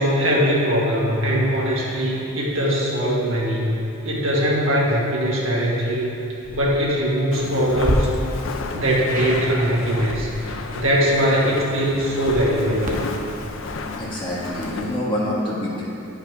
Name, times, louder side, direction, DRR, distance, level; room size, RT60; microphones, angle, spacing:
voice 1, 0.0-3.7 4.0-6.1 6.5-8.1 8.7-13.0, equal, 75° right, -5 dB, 1.6 m, -21 dB
sound 1, 6.4-6.7 7.7-8.0 9.1-9.4 12.1-15.0, right 1 dB, 40° right, 0.8 m, -31 dB
Walk footsteps, 7.3-15.0, left 3 dB, 70° left, 0.5 m, -33 dB
voice 2, 13.3-15.8, left 1 dB, 25° left, -7 dB, 1.7 m, -27 dB
9.0 x 5.6 x 4.7 m, 2.7 s
head